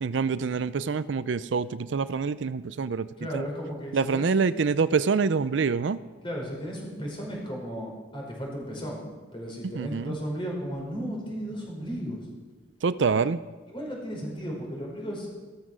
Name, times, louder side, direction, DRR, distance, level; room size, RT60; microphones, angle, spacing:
voice 1, 0.0-3.1 3.3-3.5 3.9-6.0 9.7-10.2 12.8-13.4, right 5 dB, 65° right, 15 dB, 0.4 m, -26 dB
voice 2, 3.2-4.5 6.2-12.3 13.7-15.3, equal, 25° left, -1 dB, 5.2 m, -35 dB
14.5 x 13.5 x 6.2 m, 1.3 s
head